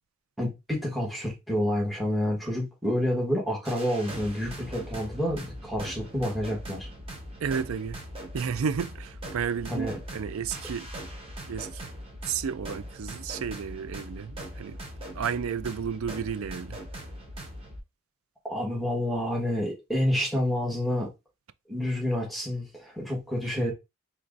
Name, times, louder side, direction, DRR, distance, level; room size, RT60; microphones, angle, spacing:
voice 1, 0.4-6.9 9.7-10.0 18.4-21.1 21.7-23.7, left 1 dB, ahead, 1.2 m, -29 dB
sound 1, 3.6-17.8, equal, 25° right, 0.9 m, -40 dB
voice 2, 7.4-8.0 8.3-10.9 11.5-11.9 12.3-14.8 15.1-16.8 23.6-23.7, right 7 dB, 65° right, 0.4 m, -32 dB
4.5 x 3.1 x 2.5 m
head